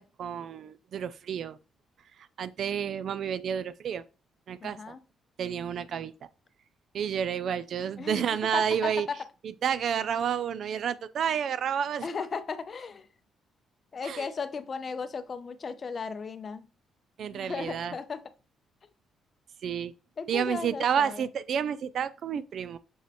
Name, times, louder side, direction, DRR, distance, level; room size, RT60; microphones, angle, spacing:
voice 1, 0.0-1.6 2.4-4.0 4.5-4.9 5.4-6.1 6.9-9.1 9.4-12.1 14.0-14.3 17.2-17.9 19.6-19.9 20.3-22.8, right 8 dB, 65° right, 0.3 m, -30 dB
voice 2, 4.6-5.0 8.0-9.2 12.0-13.1 13.9-16.6 17.3-18.2 20.2-21.2, left 5 dB, 45° left, 0.6 m, -36 dB
6.3 x 3.0 x 2.8 m
cardioid pair, 90°, 0 cm